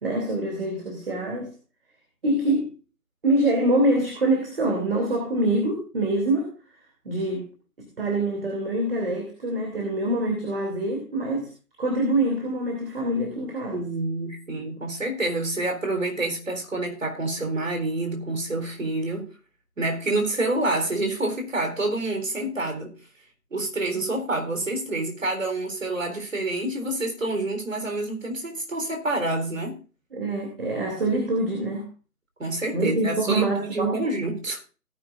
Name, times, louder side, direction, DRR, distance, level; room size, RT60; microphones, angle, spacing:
voice 1, 0.0-1.5 2.2-2.8 3.2-6.5 7.0-7.5 7.8-11.5 11.8-13.8 30.1-31.9 32.7-34.0, right 1 dB, 40° right, 3.0 m, -25 dB
voice 2, 13.7-19.3 19.8-23.0 23.5-29.8 32.4-34.6, right 2 dB, 55° right, 4.0 m, -28 dB
17.5 x 10.0 x 2.6 m
figure-of-eight pair, 155°, 45 cm